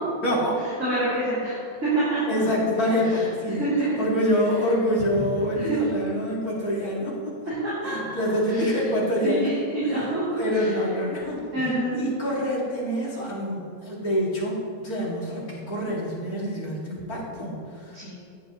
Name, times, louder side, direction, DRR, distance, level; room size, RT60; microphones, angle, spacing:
voice 1, 0.2-0.6 2.3-3.7 4.0-7.2 7.8-9.5 9.8-10.0 10.4-17.5 17.8-18.0, equal, 50° left, -5 dB, 2.6 m, -26 dB
voice 2, 0.8-1.6 1.8-2.2 3.0-3.2 3.5-4.0 5.5-5.8 7.5-8.1 8.5-8.8 9.2-10.7 11.5-12.0 17.9-18.1, right 2 dB, 40° right, -11 dB, 3.4 m, -27 dB
16.0 x 10.0 x 3.0 m, 2.4 s
omnidirectional pair, 2.0 m